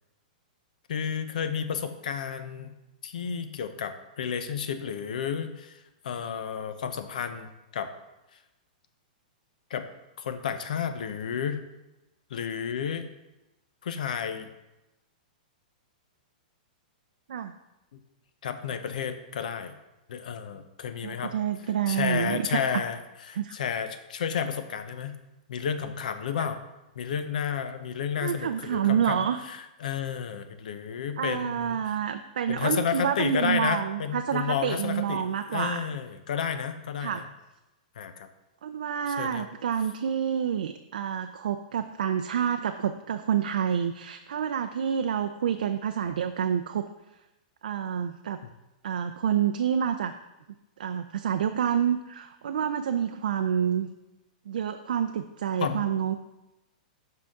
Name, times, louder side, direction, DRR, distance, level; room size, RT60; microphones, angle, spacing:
voice 1, 0.9-2.8 3.0-7.9 9.7-9.9 10.2-11.6 12.3-13.1 13.8-14.5 17.9-18.0 18.4-19.7 20.1-21.3 21.9-25.2 25.5-26.6 27.0-31.9 32.5-37.2 38.0-38.3 39.1-39.5 46.0-46.2 55.6-55.9, left 7 dB, 65° left, 9 dB, 0.7 m, -32 dB
voice 2, 21.0-22.4 23.3-23.6 28.2-29.4 31.2-35.8 37.0-37.2 38.6-46.8 47.6-48.4 48.8-50.1 50.8-53.9 54.5-56.1, right 8 dB, 85° right, 7 dB, 0.4 m, -28 dB
7.6 x 5.7 x 3.6 m, 0.98 s
supercardioid pair, 175°, 5 cm